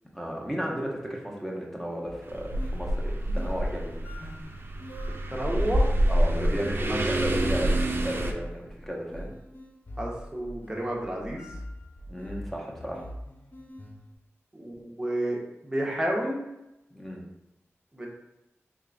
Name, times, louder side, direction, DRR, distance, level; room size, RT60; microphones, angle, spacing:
voice 1, 0.1-4.3 6.1-9.3 12.1-13.0 16.9-17.2, equal, 5° left, -2 dB, 1.0 m, -34 dB
sound 1, 2.0-14.1, equal, 40° left, 0.6 m, -43 dB
sound 2, 2.3-8.3, right 1 dB, 45° right, 0.5 m, -27 dB
voice 2, 5.3-5.9 6.9-7.0 10.0-11.4 14.5-15.4 15.6-16.4 17.9-18.1, right 1 dB, 15° right, -2 dB, 1.0 m, -30 dB
3.6 x 3.4 x 2.5 m, 0.90 s
cardioid pair, 50°, 5 cm